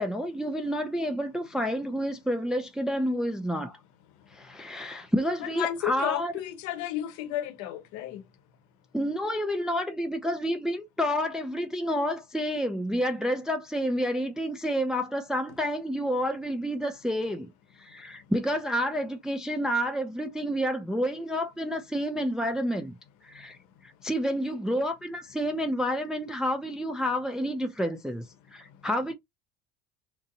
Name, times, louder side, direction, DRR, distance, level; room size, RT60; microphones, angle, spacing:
voice 1, 0.0-3.8 4.3-6.3 8.9-17.5 17.8-22.9 23.3-23.6 23.8-28.3 28.5-29.1, equal, ahead, 0.4 m, -29 dB
voice 2, 4.1-4.9 5.4-8.3 17.9-18.3 23.3-24.1 28.6-28.9, left 12 dB, 60° left, 0.8 m, -35 dB
2.6 x 2.0 x 2.6 m
hypercardioid pair, 65°, 33 cm